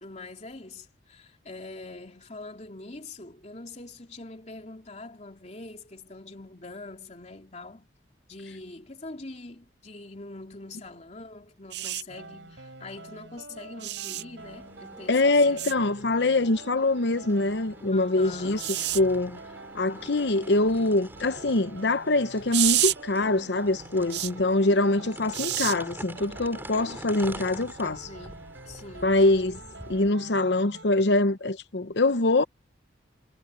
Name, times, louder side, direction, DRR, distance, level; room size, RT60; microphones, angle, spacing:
voice 1, 0.0-7.9 8.3-15.6 16.0-16.2 17.9-18.6 27.8-29.5, left 2 dB, 35° left, 3.2 m, -44 dB
sound 1, 11.7-12.0 13.8-14.2 15.6-15.7 18.6-19.0 22.5-23.0 24.1-24.3 25.3-25.7 27.2-27.4, right 14 dB, 60° right, 0.6 m, -27 dB
sound 2, 12.1-30.9, right 2 dB, 80° right, 5.0 m, -47 dB
sound 3, 14.4-30.1, right 1 dB, 10° right, 3.5 m, -46 dB
voice 2, 15.1-18.6 18.9-19.4 19.7-28.0 29.0-29.5 29.9-32.4, left 2 dB, 65° left, 0.9 m, -24 dB
head